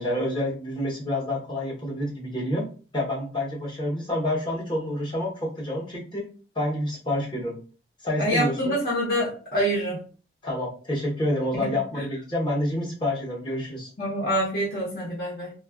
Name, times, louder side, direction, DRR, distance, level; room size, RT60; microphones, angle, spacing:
voice 1, 0.0-2.6 2.9-6.3 6.5-7.6 8.0-8.8 10.4-13.9, left 1 dB, 25° left, -4 dB, 0.8 m, -28 dB
voice 2, 8.2-10.0 11.5-12.0 14.0-15.5, equal, 55° left, -7 dB, 0.9 m, -26 dB
3.3 x 2.3 x 2.3 m, 0.39 s
head